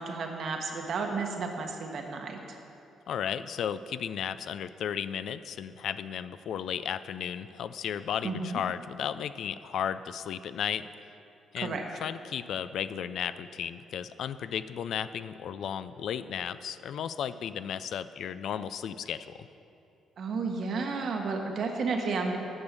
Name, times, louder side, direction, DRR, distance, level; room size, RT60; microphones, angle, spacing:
voice 1, 0.0-2.4 8.2-8.6 11.6-11.8 20.2-22.4, right 4 dB, 60° right, 3 dB, 1.2 m, -32 dB
voice 2, 3.1-10.9 11.5-19.5, left 8 dB, 70° left, 13 dB, 0.3 m, -34 dB
8.7 x 6.2 x 6.7 m, 2.7 s
cardioid pair, 90°, 0 cm